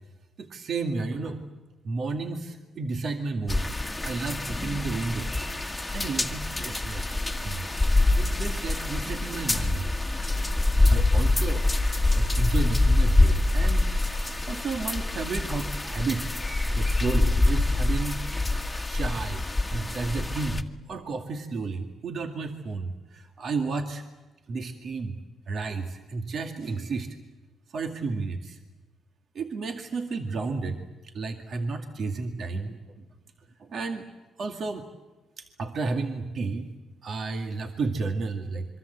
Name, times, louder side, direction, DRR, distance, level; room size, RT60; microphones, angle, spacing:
voice 1, 0.4-1.4 1.8-3.7 4.0-5.3 5.9-7.0 7.4-7.6 8.2-9.9 10.9-11.7 12.2-13.9 14.5-16.3 16.8-18.2 18.9-19.4 19.7-24.0 24.5-25.2 25.5-27.1 27.7-28.6 29.3-32.8 33.6-34.1 34.4-34.9 35.4-36.7 37.0-38.7, right 3 dB, 55° right, 5 dB, 2.1 m, -32 dB
sound 1, 3.5-20.6, left 2 dB, 10° left, 1.7 m, -25 dB
26.5 x 24.0 x 8.0 m, 1.2 s
cardioid pair, 90°, 0 cm